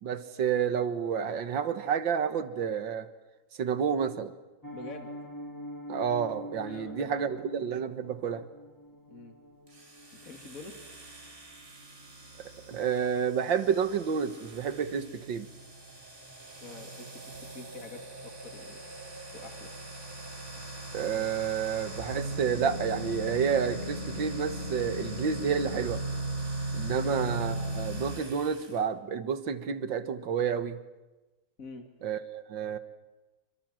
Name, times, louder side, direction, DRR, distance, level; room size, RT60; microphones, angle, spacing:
voice 1, 0.0-3.1 3.6-4.4 5.9-8.5 12.4-15.5 20.9-26.0 26.7-30.8 32.0-32.8, right 7 dB, 65° right, 11 dB, 2.0 m, -30 dB
Piano, 4.6-15.5 15.8-16.0 16.3-16.5 16.8-17.1 17.4-17.5, equal, 10° left, 1.9 m, -47 dB
voice 2, 4.7-5.1 6.6-7.4 9.1-9.3 10.1-10.8 16.5-18.8 19.3-19.8 26.9-27.2 31.6-31.9, left 3 dB, 40° left, 5 dB, 2.9 m, -46 dB
sound 1, 9.7-28.8, right 1 dB, 35° right, 3.3 m, -39 dB
sound 2, 15.4-23.4, right 2 dB, 10° right, 4.5 m, -51 dB
28.0 x 24.5 x 7.6 m, 1.1 s
omnidirectional pair, 2.3 m